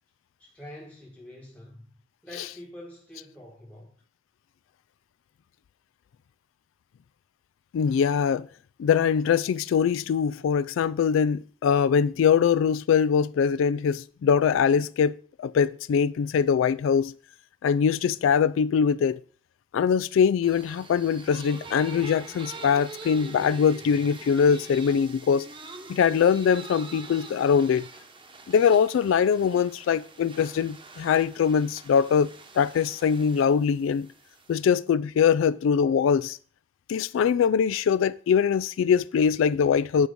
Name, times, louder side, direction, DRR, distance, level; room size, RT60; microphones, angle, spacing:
voice 1, 0.4-1.9 2.2-3.9, left 1 dB, 5° left, 1.1 m, -45 dB
voice 2, 7.7-8.5 8.8-17.1 17.6-19.2 19.7-25.5 25.9-27.9 28.5-34.1 34.5-36.4 36.9-40.1, left 7 dB, 85° left, 0.3 m, -22 dB
sound 1, 20.4-34.6, right 3 dB, 25° right, 0.9 m, -44 dB
8.3 x 4.6 x 5.2 m
head